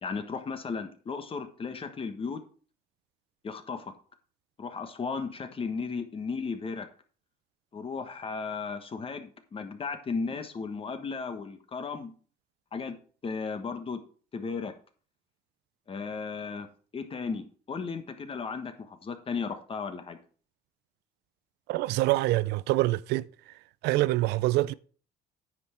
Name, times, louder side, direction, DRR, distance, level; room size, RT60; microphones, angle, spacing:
voice 1, 0.0-2.4 3.4-3.9 4.6-6.9 7.7-12.1 12.7-13.0 13.2-14.0 14.3-14.7 15.9-16.7 16.9-20.2, left 5 dB, 35° left, 1.3 m, -35 dB
voice 2, 21.7-23.3 23.8-24.7, right 17 dB, 80° right, 0.4 m, -25 dB
9.6 x 5.7 x 4.4 m
cardioid pair, 110°, 17 cm